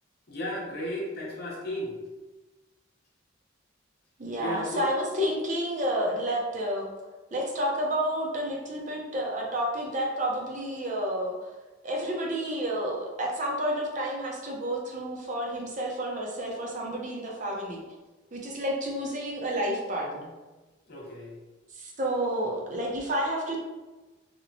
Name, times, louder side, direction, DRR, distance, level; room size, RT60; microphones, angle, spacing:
voice 1, 0.3-2.0 4.4-4.9 20.9-21.3, left 1 dB, 55° left, -3 dB, 0.7 m, -34 dB
voice 2, 4.2-6.9 7.3-11.3 11.8-17.8 18.3-20.3 21.7-23.6, equal, 40° right, -1 dB, 0.5 m, -30 dB
2.9 x 2.0 x 2.6 m, 1.2 s
head